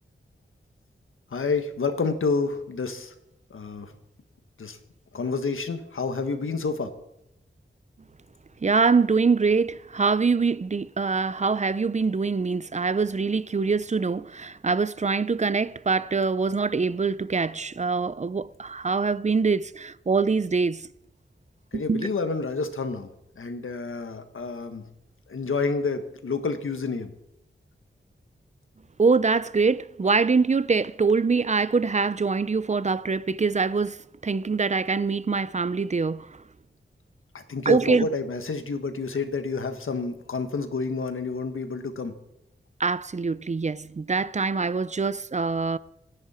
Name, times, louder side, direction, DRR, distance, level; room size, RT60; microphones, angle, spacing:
voice 1, 1.3-3.1 3.5-3.9 4.6-4.8 5.1-6.9 21.7-23.1 23.4-24.8 25.3-27.1 37.3-42.1, left 4 dB, 90° left, 1.6 m, -29 dB
voice 2, 8.6-20.8 21.7-22.1 29.0-36.3 37.7-38.1 42.8-45.8, right 4 dB, 35° right, 0.5 m, -24 dB
26.5 x 10.5 x 4.4 m
wide cardioid pair, 105°, 20 cm